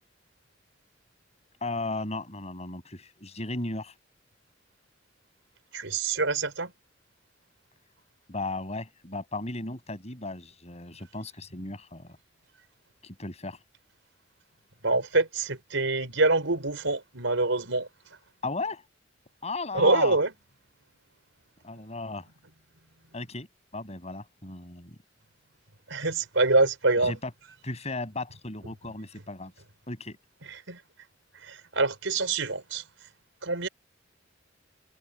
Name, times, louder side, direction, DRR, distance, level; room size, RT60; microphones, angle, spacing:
voice 1, 1.6-3.9 8.3-12.2 13.0-13.6 18.4-18.8 19.4-20.2 21.6-22.3 23.1-23.5 23.7-25.0 27.0-27.3 27.6-29.5 29.9-30.2, left 2 dB, 35° left, 7.1 m, -35 dB
voice 2, 5.7-6.7 14.8-17.9 19.7-20.3 25.9-27.1 30.5-30.8 31.4-32.8 33.4-33.7, right 3 dB, 80° right, 4.8 m, -25 dB
head